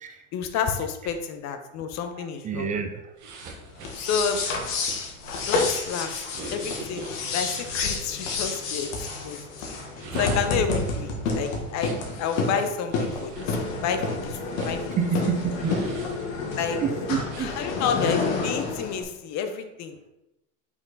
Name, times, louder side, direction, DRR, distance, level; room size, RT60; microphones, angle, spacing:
voice 1, 0.3-2.7 4.0-4.4 5.3-6.2 6.5-8.9 9.2-9.4 10.2-14.8 16.6-16.8 17.4-20.1, left 6 dB, 40° left, 7 dB, 0.8 m, -30 dB
voice 2, 2.4-3.0 15.0-15.7 16.8-17.5, right 7 dB, 20° right, 6 dB, 0.4 m, -28 dB
sound 1, 3.2-8.4 9.8-12.1 12.9-15.0 15.6-16.6 17.2-17.5, right 2 dB, 45° right, 1.4 m, -41 dB
sound 2, 3.8-19.0, left 3 dB, 65° left, 1.6 m, -29 dB
5.8 x 4.4 x 4.0 m, 0.92 s
hypercardioid pair, 110°, 42 cm